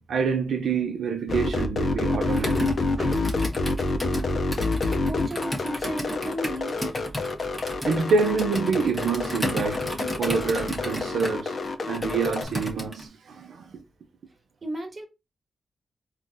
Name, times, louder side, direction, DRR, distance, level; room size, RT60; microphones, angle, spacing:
voice 1, 0.1-2.7 7.8-9.8 10.2-11.6 11.9-13.6, right 5 dB, 85° right, 0.4 m, -26 dB
sound 1, 1.3-12.4, left 3 dB, 55° left, 0.5 m, -27 dB
Computer keyboard, 2.3-13.1, equal, 5° left, 1.0 m, -34 dB
voice 2, 3.0-3.3 4.8-6.9 14.6-15.1, right 1 dB, 35° right, 1.2 m, -34 dB
3.8 x 2.3 x 2.5 m
cardioid pair, 80°, 0 cm